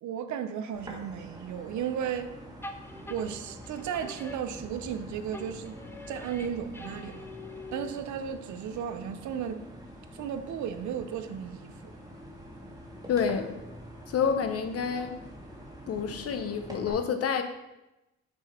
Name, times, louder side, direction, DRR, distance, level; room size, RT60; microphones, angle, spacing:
voice 1, 0.0-2.4 3.1-5.8 6.1-7.2 7.7-9.7 10.1-11.9, right 8 dB, 70° right, 0.6 m, -35 dB
sound 1, 0.7-16.9, equal, 15° right, 1.4 m, -46 dB
sound 2, 2.6-5.0 5.3-8.2, left 2 dB, 10° left, 0.4 m, -45 dB
voice 2, 13.1-13.5 14.1-15.2 15.9-17.4, left 6 dB, 50° left, 0.7 m, -28 dB
6.3 x 3.9 x 4.3 m
cardioid pair, 90°, 30 cm